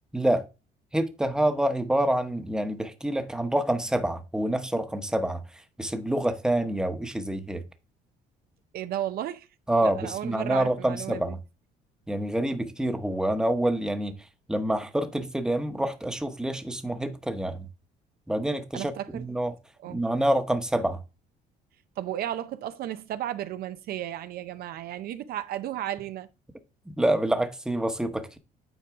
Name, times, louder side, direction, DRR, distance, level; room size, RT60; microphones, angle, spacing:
voice 1, 0.1-0.4 0.9-5.4 5.8-7.6 9.7-11.4 12.1-14.2 14.5-17.7 18.3-19.5 19.9-21.0 26.9-28.4, right 1 dB, 5° right, 0.9 m, -27 dB
voice 2, 8.7-9.5 9.8-11.4 18.7-19.2 19.8-20.0 22.0-26.3, right 12 dB, 65° right, 0.5 m, -34 dB
9.0 x 4.6 x 3.5 m
cardioid pair, 110°, 17 cm